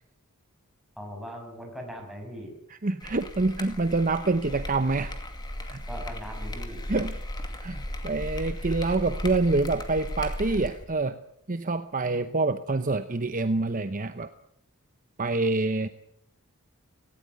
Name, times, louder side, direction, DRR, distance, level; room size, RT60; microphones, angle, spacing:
voice 1, 1.0-2.6 5.9-6.8, equal, ahead, 1 dB, 6.5 m, -40 dB
voice 2, 2.8-5.1 5.7-5.8 6.9-7.2 7.6-11.2 11.5-14.3 15.2-15.9, right 3 dB, 35° right, 10 dB, 0.8 m, -26 dB
sound 1, 3.0-10.8, left 1 dB, 20° left, 2.3 m, -36 dB
18.0 x 17.5 x 9.5 m, 0.76 s
head